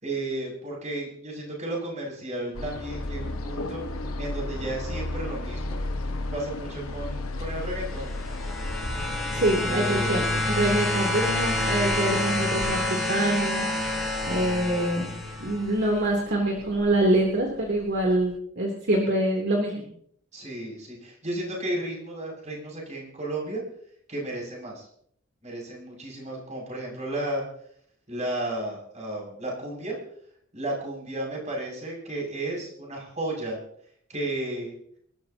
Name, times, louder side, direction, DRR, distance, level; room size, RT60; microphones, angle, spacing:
voice 1, 0.0-3.8 4.2-5.8 6.3-8.2 9.6-10.3 20.3-23.6 24.1-24.9 25.4-27.4 28.1-30.0 30.5-33.6 34.1-34.7, right 1 dB, 35° right, -2 dB, 6.9 m, -33 dB
sound 1, 2.5-18.4, left 2 dB, 90° left, 1.3 m, -36 dB
sound 2, 8.0-15.7 16.8-16.9, left 1 dB, ahead, 4.4 m, -28 dB
voice 2, 9.3-15.1 15.4-19.8, right 1 dB, 55° right, -1 dB, 3.2 m, -25 dB
27.5 x 13.5 x 2.9 m, 0.65 s
head